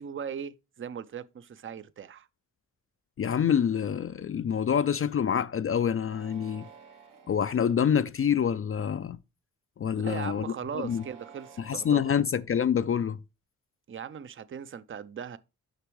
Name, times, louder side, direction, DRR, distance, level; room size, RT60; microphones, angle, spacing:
voice 1, 0.0-2.3 10.0-12.1 13.9-15.4, right 7 dB, 40° right, 0.6 m, -39 dB
voice 2, 3.2-6.6 7.3-9.2 9.8-10.5 10.8-11.0 11.6-13.2, left 8 dB, 45° left, 0.4 m, -26 dB
sound 1, 6.0-7.5 8.2-8.7 10.7-12.2, right 7 dB, 80° right, 1.6 m, -52 dB
6.6 x 5.9 x 3.1 m
cardioid pair, 50°, 32 cm